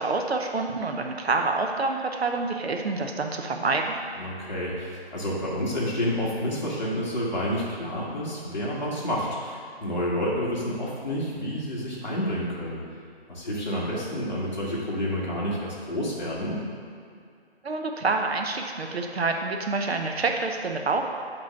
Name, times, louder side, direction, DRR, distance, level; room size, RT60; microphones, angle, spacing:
voice 1, 0.0-4.0 17.6-21.0, right 3 dB, 70° right, 3 dB, 0.8 m, -27 dB
voice 2, 4.2-12.8 13.3-16.6, equal, 40° left, -6 dB, 1.6 m, -29 dB
7.5 x 3.1 x 5.8 m, 2.3 s
hypercardioid pair, 175°, 33 cm